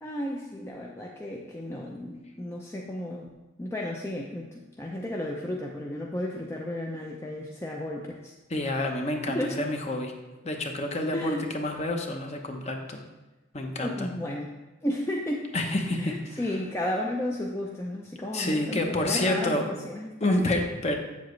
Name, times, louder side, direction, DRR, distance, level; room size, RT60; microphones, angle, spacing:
voice 1, 0.0-3.3 3.6-8.3 9.3-9.7 11.1-11.5 13.8-14.5 14.8-15.5 15.9-20.5, left 1 dB, 15° left, -1 dB, 0.5 m, -33 dB
voice 2, 8.5-10.1 10.4-13.0 13.5-14.1 15.5-16.6 18.3-19.7 20.2-21.0, left 1 dB, 35° left, 3 dB, 0.8 m, -28 dB
7.8 x 7.3 x 3.1 m, 1.1 s
head